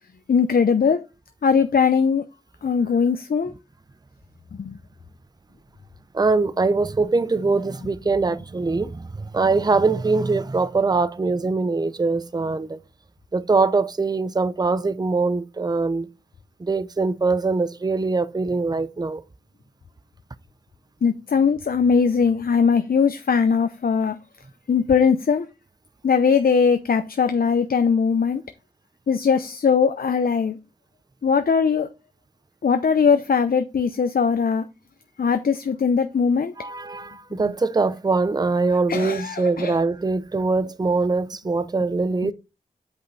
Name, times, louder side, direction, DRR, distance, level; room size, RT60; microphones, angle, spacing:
voice 1, 0.3-1.0 1.4-2.2 2.6-3.5 4.6-4.7 21.0-24.2 24.7-25.5 26.0-28.4 29.1-30.6 31.2-31.9 32.6-34.6 35.2-36.5 38.9-39.7 42.2-42.3, left 6 dB, 65° left, 0.6 m, -20 dB
voice 2, 6.1-9.1 9.3-12.8 13.3-16.1 16.6-19.2 36.6-42.3, right 3 dB, 25° right, 0.5 m, -22 dB
8.1 x 5.1 x 4.0 m
wide cardioid pair, 80°, 16 cm